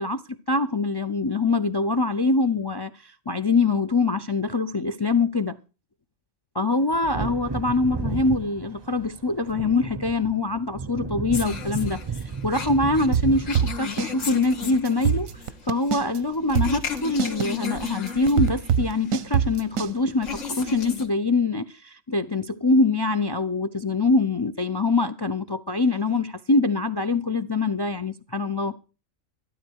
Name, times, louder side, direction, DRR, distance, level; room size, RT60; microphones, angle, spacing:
voice 1, 0.0-5.6 6.5-15.3 15.7-28.8, left 3 dB, 35° left, 0.4 m, -24 dB
Wind / Thunder, 6.9-15.2 15.5-15.6, right 5 dB, 30° right, 0.5 m, -34 dB
sound 1, 11.3-21.1, left 5 dB, 70° left, 2.0 m, -35 dB
sound 2, 13.1-14.1 14.4-14.5 14.9-16.2 16.5-19.9, right 9 dB, 90° right, 1.2 m, -23 dB
13.0 x 12.5 x 4.6 m
omnidirectional pair, 1.4 m